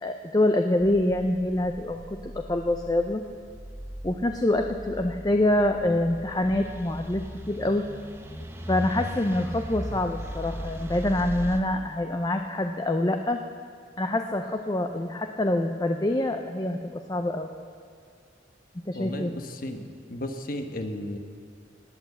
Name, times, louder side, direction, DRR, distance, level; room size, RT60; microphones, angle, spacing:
voice 1, 0.0-3.2 4.0-7.8 8.7-13.4 14.0-17.5 18.9-19.3, left 1 dB, 20° left, 5 dB, 0.5 m, -26 dB
sound 1, 0.8-11.6, equal, 15° right, 0.9 m, -38 dB
voice 2, 18.9-19.8 20.1-21.2, left 1 dB, 50° left, 6 dB, 1.1 m, -34 dB
19.0 x 8.4 x 7.9 m, 2.2 s
head